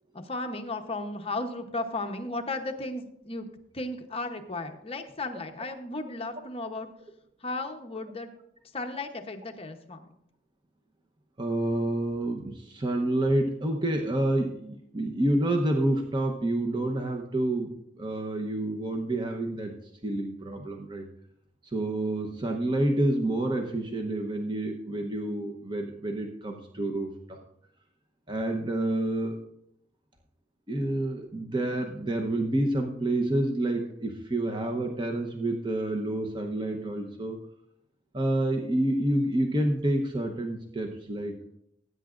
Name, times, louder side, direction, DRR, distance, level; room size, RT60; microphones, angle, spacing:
voice 1, 0.1-3.5 3.7-6.9 7.4-8.3 8.7-10.0, left 2 dB, 30° left, 5 dB, 0.9 m, -35 dB
voice 2, 11.4-19.7 20.0-21.1 21.7-27.4 28.3-29.4 30.7-37.4 38.1-41.6, right 1 dB, 25° right, 3 dB, 0.9 m, -28 dB
19.5 x 9.4 x 2.5 m, 0.76 s
head